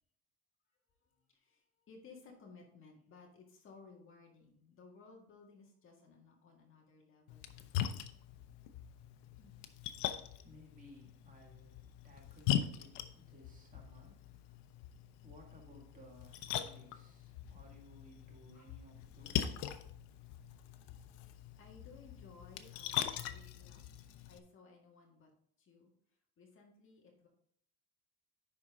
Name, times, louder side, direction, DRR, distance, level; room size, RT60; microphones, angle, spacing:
voice 1, 1.1-8.1 9.4-9.6 18.5-18.7 20.6-20.7 21.2-25.3 25.6-25.9 26.4-27.3, left 4 dB, 30° left, -1 dB, 1.9 m, -59 dB
Splash splatter, 7.3-24.4, left 10 dB, 75° left, 0.8 m, -41 dB
voice 2, 10.4-14.6 15.2-19.6, equal, 20° right, -1 dB, 2.1 m, -60 dB
10.5 x 4.2 x 3.7 m, 0.67 s
cardioid pair, 165°, 40 cm